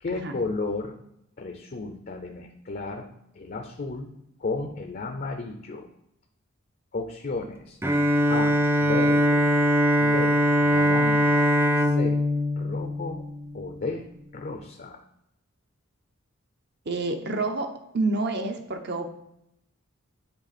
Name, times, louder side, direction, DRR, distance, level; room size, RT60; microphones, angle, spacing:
voice 1, 0.0-0.9 1.4-3.1 3.3-4.1 4.4-5.9 6.9-7.8 8.3-9.5 10.0-11.5 11.8-12.2 12.6-13.2 13.5-15.0, left 3 dB, 40° left, 5 dB, 0.5 m, -33 dB
Bowed string instrument, 7.8-13.7, equal, 10° right, 0.3 m, -22 dB
voice 2, 16.9-17.7 17.9-19.1, right 3 dB, 50° right, 6 dB, 0.7 m, -28 dB
8.0 x 3.3 x 4.2 m, 0.80 s
head